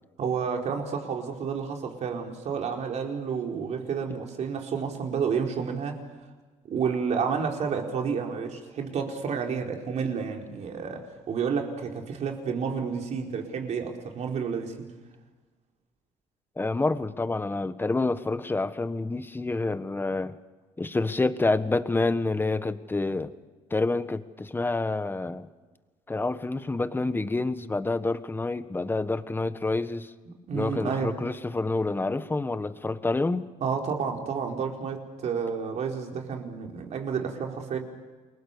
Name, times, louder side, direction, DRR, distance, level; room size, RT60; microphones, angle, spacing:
voice 1, 0.2-6.0 6.6-14.9 30.3-31.1 33.6-37.8, right 6 dB, 60° right, 4.5 m, -30 dB
voice 2, 16.6-20.4 20.8-23.3 23.7-25.5 26.1-30.1 30.5-33.5, left 2 dB, 15° left, 1.4 m, -28 dB
29.0 x 22.5 x 6.9 m
cardioid pair, 95°, 13 cm